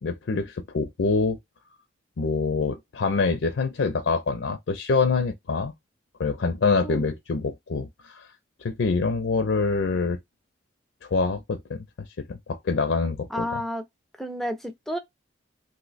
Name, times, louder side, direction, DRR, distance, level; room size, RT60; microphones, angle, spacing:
voice 1, 0.0-1.4 2.2-5.7 6.2-8.3 8.6-10.2 11.1-11.8 12.2-13.6, left 4 dB, 70° left, 0.5 m, -25 dB
voice 2, 13.3-13.8 14.2-15.0, equal, ahead, 0.4 m, -31 dB
2.7 x 2.1 x 3.9 m
head